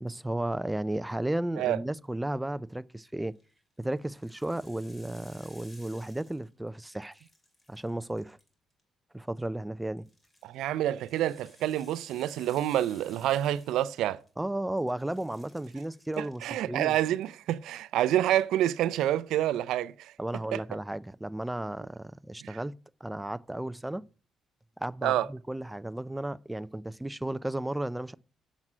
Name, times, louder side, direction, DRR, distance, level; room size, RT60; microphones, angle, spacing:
voice 1, 0.0-3.4 3.8-7.2 7.7-8.4 9.1-10.1 14.4-17.0 20.2-24.1 24.8-28.1, right 1 dB, 10° right, 0.4 m, -34 dB
sound 1, 3.1-3.4 3.9-6.7 7.0-8.8 10.0-14.5 14.8-16.5 16.8-17.3, left 1 dB, 20° left, 2.6 m, -58 dB
voice 2, 10.4-14.2 16.2-20.1 20.5-20.6 22.4-22.6 25.0-25.3, right 12 dB, 85° right, 0.4 m, -28 dB
7.3 x 6.1 x 5.4 m
cardioid pair, 90°, 0 cm